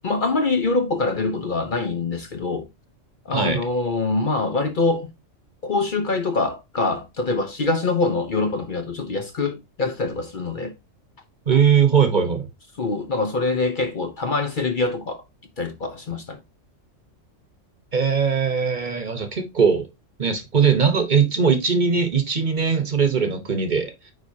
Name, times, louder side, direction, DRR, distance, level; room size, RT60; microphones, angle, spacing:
voice 1, 0.0-2.7 3.3-5.1 5.6-10.7 12.8-15.2 15.6-16.4, left 3 dB, 45° left, 0.8 m, -24 dB
voice 2, 3.3-3.6 11.5-12.5 17.9-19.9 20.2-23.9, right 6 dB, 40° right, 1.0 m, -20 dB
9.3 x 4.2 x 2.7 m
omnidirectional pair, 1.3 m